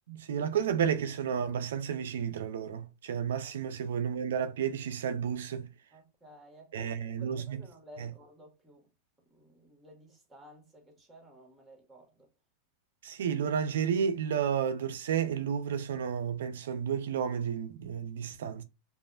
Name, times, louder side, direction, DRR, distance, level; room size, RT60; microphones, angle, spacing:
voice 1, 0.1-5.7 6.7-7.6 8.0-8.1 13.0-18.6, right 8 dB, 80° right, 0.4 m, -31 dB
voice 2, 3.4-4.0 5.9-8.9 9.3-12.3, equal, 10° right, 1.7 m, -55 dB
5.2 x 2.4 x 2.4 m
hypercardioid pair, 110°, 0 cm